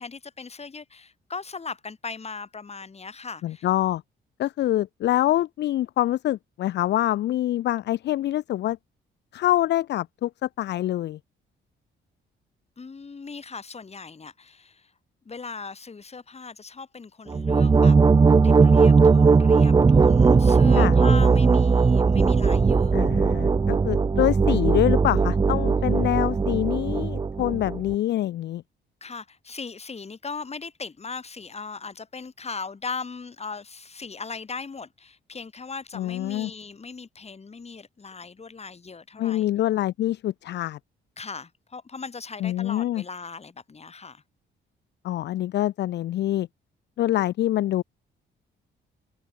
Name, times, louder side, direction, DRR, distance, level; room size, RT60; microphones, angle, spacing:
voice 1, 0.0-3.7 12.8-14.9 15.3-18.0 18.4-23.0 29.0-39.5 41.2-44.2, left 4 dB, 30° left, 5.4 m, -38 dB
voice 2, 3.4-4.0 4.4-8.8 9.3-11.2 20.8-20.9 22.9-28.6 35.9-36.5 39.2-40.8 42.4-43.0 45.0-46.5 47.0-47.8, left 13 dB, 60° left, 0.5 m, -25 dB
sound 1, 17.3-27.9, right 4 dB, 20° right, 0.5 m, -18 dB
cardioid pair, 90°, 20 cm